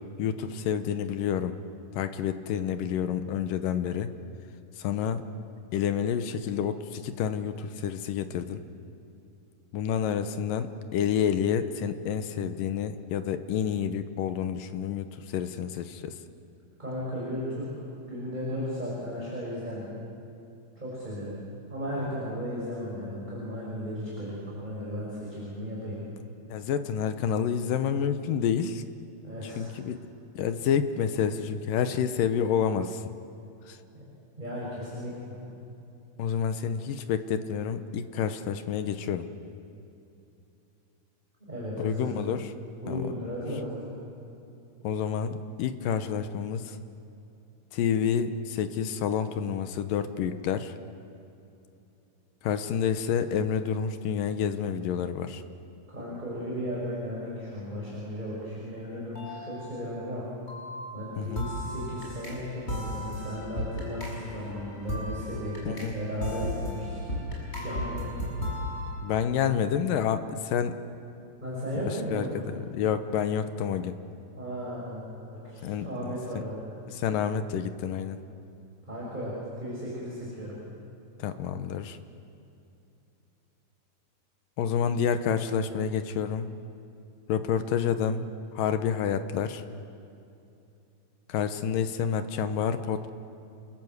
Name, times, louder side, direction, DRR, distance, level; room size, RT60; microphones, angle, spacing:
voice 1, 0.2-1.6 1.9-4.1 4.8-5.2 5.7-8.6 9.7-16.1 26.5-28.8 29.6-30.0 30.4-33.0 33.7-33.8 36.2-39.3 41.8-42.4 42.9-43.1 44.8-45.3 45.6-46.8 47.7-50.7 52.4-55.4 61.2-61.5 65.7-65.9 69.0-70.8 71.9-72.3 72.5-74.0 75.6-76.2 76.9-78.2 81.2-82.0 84.6-86.5 87.3-88.3 88.5-89.6 91.3-93.1, left 8 dB, 70° left, 9 dB, 2.2 m, -29 dB
voice 2, 16.8-19.9 20.8-21.4 21.7-26.0 29.2-29.7 33.9-34.0 34.4-35.4 41.4-42.2 42.8-43.8 55.9-60.2 60.9-67.2 67.5-68.2 71.4-72.5 74.4-76.7 78.8-80.6, equal, 10° right, -6 dB, 6.1 m, -35 dB
sound 1, 59.1-60.1 60.4-68.9, left 1 dB, 15° left, 6.6 m, -35 dB
29.0 x 21.5 x 8.0 m, 2.8 s
omnidirectional pair, 4.8 m